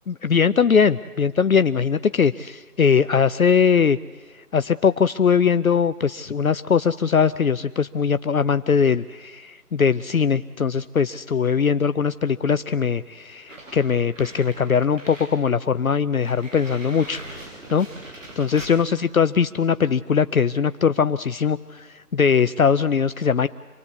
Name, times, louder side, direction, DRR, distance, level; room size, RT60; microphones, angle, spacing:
voice 1, 0.1-4.0 4.3-17.9 18.4-23.5, left 6 dB, 60° left, 12 dB, 0.7 m, -21 dB
sound 1, 13.5-15.4 15.8-15.9 16.2-18.8, right 1 dB, 50° right, 7.4 m, -41 dB
26.5 x 20.0 x 8.4 m, 1.3 s
figure-of-eight pair, 170°, 47 cm